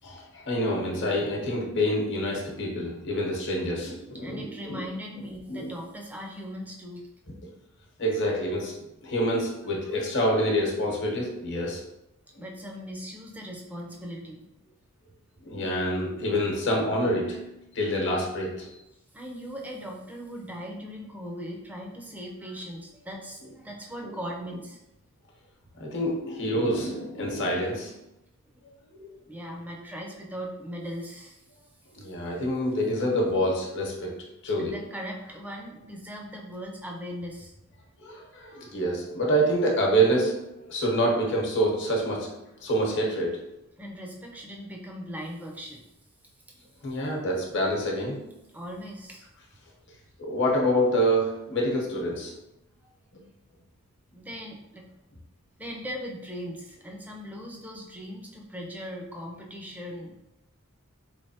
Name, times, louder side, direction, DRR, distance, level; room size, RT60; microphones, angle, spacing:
voice 1, 0.0-4.8 5.5-5.7 7.3-7.4 8.0-8.8 9.0-11.8 15.4-18.8 24.0-24.1 25.8-27.9 28.6-29.2 31.9-34.8 38.0-42.3 42.6-43.4 46.8-48.2 50.2-52.3, equal, 55° left, -1 dB, 0.9 m, -27 dB
voice 2, 4.2-7.1 10.0-10.1 12.4-14.4 19.1-24.8 29.3-31.4 34.6-37.5 38.5-38.6 43.8-45.8 46.8-46.9 48.5-49.3 52.8-52.9 54.1-54.9 55.6-60.1, equal, 5° right, -1 dB, 0.5 m, -39 dB
4.0 x 3.2 x 2.7 m, 0.90 s
head